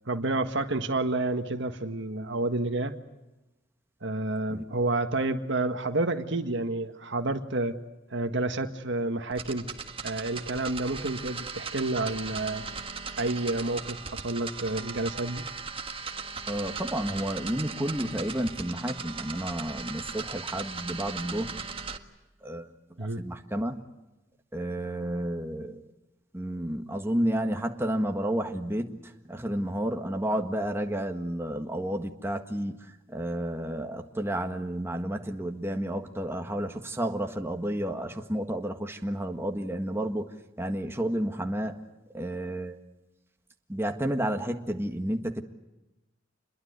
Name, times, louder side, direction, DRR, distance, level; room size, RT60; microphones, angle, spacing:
voice 1, 0.1-2.9 4.0-7.8 8.1-9.7 10.0-12.7 13.2-15.4 23.0-23.2, right 2 dB, 65° right, 7 dB, 1.8 m, -29 dB
sound 1, 9.3-22.0, right 5 dB, 30° right, 1.6 m, -38 dB
voice 2, 16.5-21.6 22.4-22.7 23.0-23.8 24.5-25.8 26.3-40.3 40.6-41.8 42.1-42.8 43.7-45.4, right 1 dB, 15° right, 4 dB, 1.7 m, -31 dB
28.5 x 22.0 x 8.2 m, 1.0 s
head